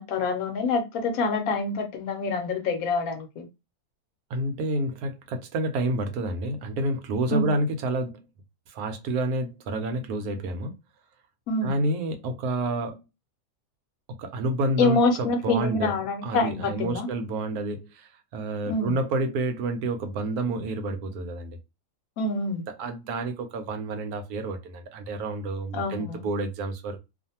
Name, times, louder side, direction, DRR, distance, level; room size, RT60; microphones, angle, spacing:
voice 1, 0.0-3.5 7.3-7.5 11.5-11.8 14.8-17.1 18.7-19.0 22.2-22.6 25.7-26.2, left 3 dB, 70° left, 1.0 m, -26 dB
voice 2, 4.3-8.2 8.7-10.8 11.6-13.0 14.1-15.9 16.2-21.6 22.8-27.0, right 2 dB, 80° right, 1.1 m, -29 dB
2.5 x 2.5 x 2.7 m
omnidirectional pair, 1.6 m